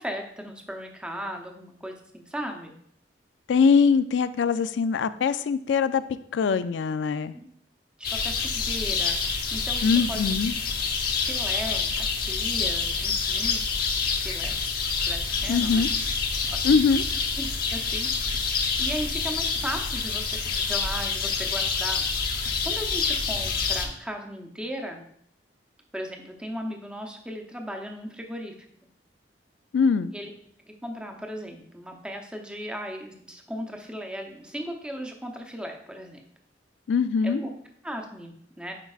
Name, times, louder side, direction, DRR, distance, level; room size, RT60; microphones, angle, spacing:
voice 1, 0.0-2.7 7.3-7.5 8.0-10.2 11.2-11.9 12.3-13.6 14.2-14.5 15.1-15.8 17.4-18.1 18.8-22.0 22.4-25.0 25.9-28.5 30.1-30.3 30.7-36.2 37.2-37.5 37.8-38.7, equal, 5° right, 3 dB, 0.7 m, -36 dB
voice 2, 3.5-6.0 6.3-7.3 8.6-8.7 9.8-10.6 15.5-15.9 16.6-17.0 29.7-30.1 36.9-37.4, left 5 dB, 80° left, 13 dB, 0.4 m, -22 dB
sound 1, 8.0-23.9, left 5 dB, 55° left, 0.9 m, -27 dB
9.6 x 4.6 x 2.4 m, 0.69 s
head